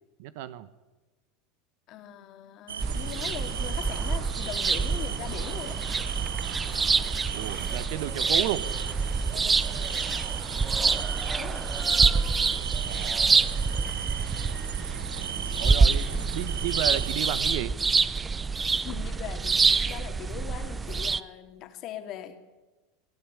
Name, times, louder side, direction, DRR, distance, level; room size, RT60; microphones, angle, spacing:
voice 1, 0.2-0.7 7.3-8.7 12.8-13.4 15.6-17.8, right 13 dB, 65° right, 15 dB, 1.1 m, -33 dB
voice 2, 1.9-5.8 10.8-11.1 11.4-11.7 13.7-13.9 16.1-16.3 18.8-22.6, left 10 dB, 50° left, 7 dB, 2.5 m, -41 dB
sound 1, 2.7-17.5, right 9 dB, 80° right, 0.6 m, -37 dB
sound 2, 2.8-21.2, right 4 dB, 20° right, 0.7 m, -26 dB
23.0 x 12.0 x 9.8 m, 1.2 s
hypercardioid pair, 85°, 0 cm